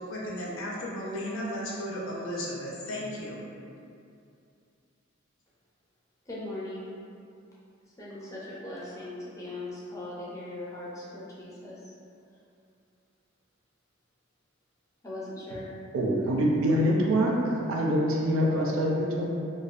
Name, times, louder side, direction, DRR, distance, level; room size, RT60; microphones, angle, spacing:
voice 1, 0.0-3.4, equal, 70° left, -5 dB, 0.5 m, -34 dB
voice 2, 6.3-6.9 8.0-11.8 15.0-15.7 16.7-16.8, left 1 dB, 15° left, -8 dB, 0.5 m, -39 dB
voice 3, 15.9-19.3, equal, 75° right, -2 dB, 0.4 m, -25 dB
2.4 x 2.1 x 2.3 m, 2.5 s
head